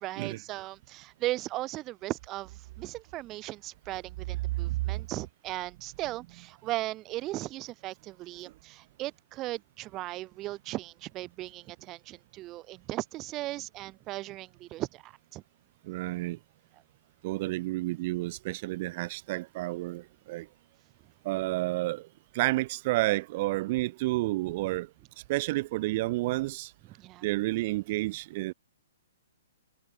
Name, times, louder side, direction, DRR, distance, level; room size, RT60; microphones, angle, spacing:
voice 1, 0.0-15.4 27.0-27.2, right 17 dB, 25° right, 5.5 m, -37 dB
voice 2, 15.9-16.4 17.2-20.5 21.2-22.1 22.3-24.9 25.3-26.7 27.2-28.5, right 19 dB, 40° right, 4.7 m, -30 dB
hypercardioid pair, 155°, 0 cm